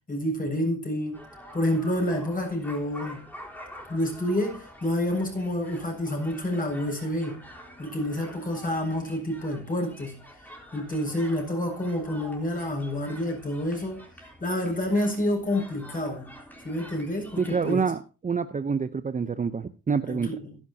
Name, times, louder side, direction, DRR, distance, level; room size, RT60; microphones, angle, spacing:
voice 1, 0.1-1.2 1.5-3.2 3.9-7.4 7.8-10.2 10.7-14.0 14.4-16.3 16.6-17.8 20.1-20.6, left 1 dB, 30° left, 7.7 m, -28 dB
sound 1, 1.1-17.7, equal, 5° left, 3.9 m, -47 dB
voice 2, 17.4-20.3, right 5 dB, 25° right, 0.8 m, -27 dB
15.5 x 12.0 x 2.9 m
cardioid pair, 90°, 30 cm